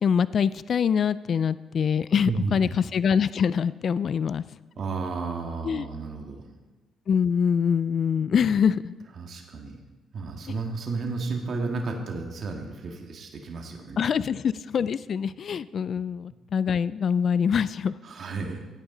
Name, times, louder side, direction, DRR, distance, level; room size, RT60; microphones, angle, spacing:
voice 1, 0.0-4.4 5.6-5.9 7.1-8.9 14.0-17.9, left 7 dB, 55° left, 17 dB, 0.3 m, -24 dB
voice 2, 2.2-2.8 4.8-6.4 9.2-9.8 10.1-14.0 18.0-18.6, right 4 dB, 55° right, 2 dB, 1.8 m, -32 dB
16.0 x 9.1 x 3.9 m, 1.2 s
cardioid pair, 90°, 0 cm